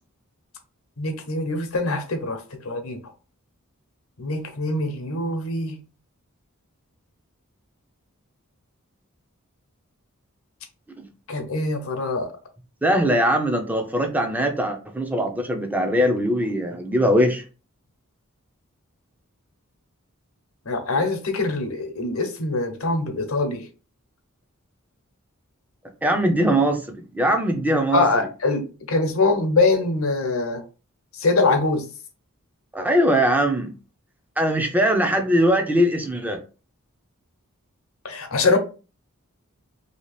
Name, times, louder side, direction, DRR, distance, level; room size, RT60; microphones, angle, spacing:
voice 1, 1.0-2.4 2.6-3.0 4.2-5.8 11.3-12.3 20.7-23.6 27.9-30.6 31.2-31.9 38.0-38.6, left 3 dB, 75° left, 0.8 m, -23 dB
voice 2, 12.8-17.4 26.0-26.8 27.1-28.3 32.7-33.7 34.4-36.4, equal, 10° right, 0.5 m, -21 dB
2.8 x 2.8 x 3.2 m
head